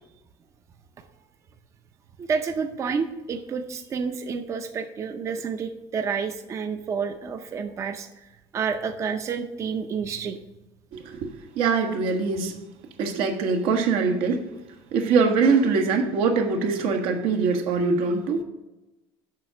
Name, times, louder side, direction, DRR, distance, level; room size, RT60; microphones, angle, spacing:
voice 1, 2.2-10.4, right 6 dB, 30° right, 0.5 m, -29 dB
voice 2, 10.9-11.3 11.5-12.6 13.0-14.5 14.9-18.4, right 4 dB, 80° right, 1.3 m, -23 dB
7.4 x 5.7 x 6.2 m
cardioid pair, 150°, 10 cm